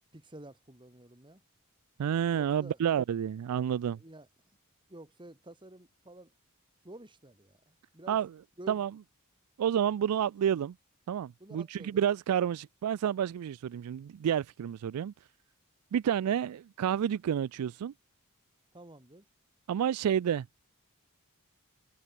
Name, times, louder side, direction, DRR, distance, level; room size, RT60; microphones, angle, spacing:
voice 1, 0.1-1.4 2.3-2.8 4.0-4.3 4.9-6.3 6.8-8.2 8.6-8.8 11.4-12.0 18.7-19.2, right 1 dB, 20° right, 2.7 m, -50 dB
voice 2, 2.0-4.0 8.1-8.3 8.7-8.9 9.6-10.7 11.1-15.1 15.9-17.9 19.7-20.5, right 9 dB, 85° right, 0.3 m, -29 dB
head